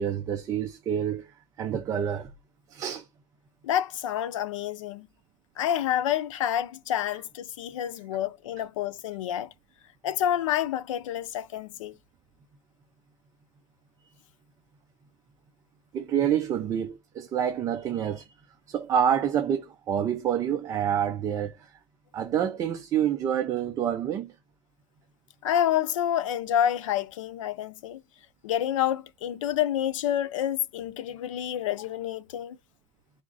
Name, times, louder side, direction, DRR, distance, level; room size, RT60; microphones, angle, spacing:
voice 1, 0.0-2.3 2.7-3.1 15.9-18.3 18.7-21.7 22.1-24.3, right 9 dB, 20° right, 0.5 m, -27 dB
voice 2, 3.6-5.1 5.6-9.5 10.0-11.9 25.4-28.0 28.4-32.6, left 10 dB, 90° left, 0.6 m, -28 dB
3.6 x 3.1 x 3.9 m
supercardioid pair, 160°, 16 cm